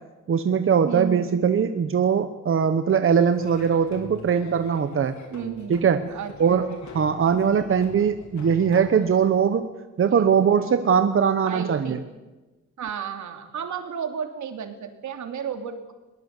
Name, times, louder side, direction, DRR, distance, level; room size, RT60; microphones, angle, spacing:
voice 1, 0.3-5.1 5.7-6.0 6.4-9.7 10.0-12.0, right 7 dB, 45° right, 9 dB, 1.1 m, -21 dB
voice 2, 0.8-1.3 5.3-5.8 6.1-6.6 7.3-7.6 10.1-10.3 10.6-10.8 11.4-12.0 12.8-15.9, right 7 dB, 75° right, 6 dB, 2.9 m, -33 dB
Laughter / Drum, 3.3-9.3, left 3 dB, 70° left, 4.5 m, -43 dB
21.5 x 20.0 x 8.4 m, 1.2 s
wide cardioid pair, 135°, 30 cm